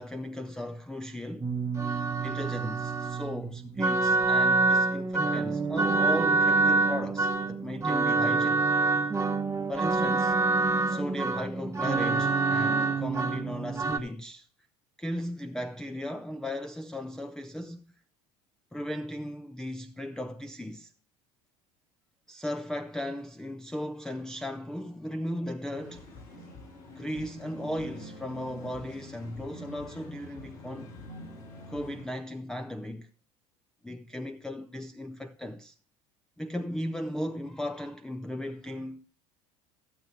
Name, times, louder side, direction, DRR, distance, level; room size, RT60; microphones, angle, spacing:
voice 1, 0.0-1.5 2.2-8.6 9.7-10.4 10.9-14.5 15.0-17.9 18.7-20.9 22.3-26.1 26.9-30.9 31.7-33.1 33.8-35.7 36.4-39.1, left 1 dB, 5° left, 0.4 m, -36 dB
sound 1, 1.4-14.0, right 3 dB, 15° right, 0.9 m, -26 dB
sound 2, 25.7-32.0, left 1 dB, 60° left, 6.1 m, -46 dB
14.5 x 7.2 x 3.3 m
hypercardioid pair, 90°, 18 cm